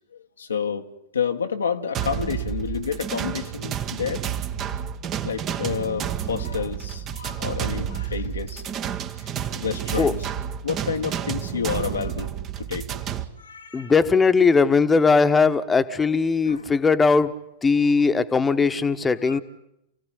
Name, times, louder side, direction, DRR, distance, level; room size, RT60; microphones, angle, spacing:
voice 1, 0.1-0.9 1.1-4.2 5.2-8.6 9.2-10.3 10.6-12.9 13.4-13.9 16.4-16.7 17.8-17.9 19.2-19.4, left 6 dB, 75° left, 1.6 m, -30 dB
sound 1, 1.9-13.2, right 9 dB, 35° right, 1.6 m, -30 dB
voice 2, 13.7-17.3 17.6-19.4, left 4 dB, 15° left, 1.4 m, -19 dB
28.0 x 17.0 x 9.8 m
figure-of-eight pair, 95°, 0 cm